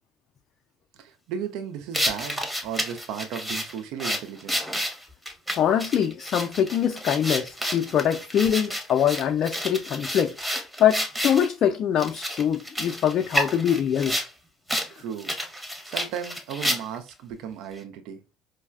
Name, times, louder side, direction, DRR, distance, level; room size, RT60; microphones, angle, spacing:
voice 1, 0.9-4.6 14.9-15.4 15.9-18.2, right 8 dB, 65° right, 0.4 m, -35 dB
sound 1, 1.9-11.5 12.0-14.3 14.7-14.9 15.2-17.1, equal, ahead, 0.8 m, -30 dB
voice 2, 5.5-10.4 10.8-14.2, left 9 dB, 50° left, 0.3 m, -23 dB
4.5 x 2.0 x 2.3 m
hypercardioid pair, 60°, 0 cm